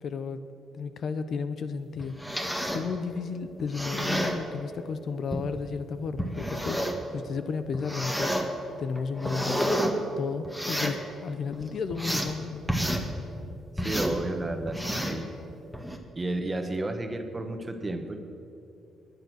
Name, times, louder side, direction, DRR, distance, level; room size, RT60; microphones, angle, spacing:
voice 1, 0.0-0.4 0.7-2.2 2.6-8.4 8.8-9.8 10.2-12.6, left 5 dB, 60° left, 11 dB, 0.8 m, -33 dB
sound 1, 2.0-2.9 3.6-4.4 5.3-5.4 6.2-7.0 7.7-8.4 9.0-9.9 10.4-11.0 11.5-12.3 12.7-13.0 13.8-14.2 14.7-15.2 15.7-16.0, equal, 5° left, 1.9 m, -29 dB
voice 2, 13.7-15.3 16.1-18.2, right 2 dB, 25° right, 7 dB, 1.5 m, -32 dB
20.5 x 9.8 x 6.4 m, 2.8 s
cardioid pair, 90°, 0 cm